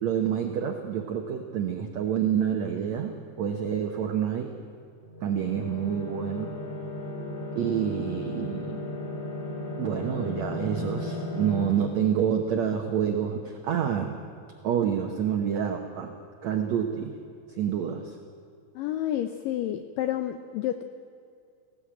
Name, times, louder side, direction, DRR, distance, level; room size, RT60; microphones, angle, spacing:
voice 1, 0.0-4.5 5.2-6.5 7.5-8.9 9.8-14.2 14.6-16.1 16.4-17.1 17.6-18.2, right 8 dB, 80° right, 4 dB, 1.6 m, -28 dB
sound 1, 5.0-11.7, left 1 dB, 55° left, 8.4 m, -35 dB
voice 2, 18.8-20.8, left 12 dB, 85° left, 9 dB, 1.9 m, -30 dB
18.5 x 16.5 x 8.7 m, 2.4 s
omnidirectional pair, 4.7 m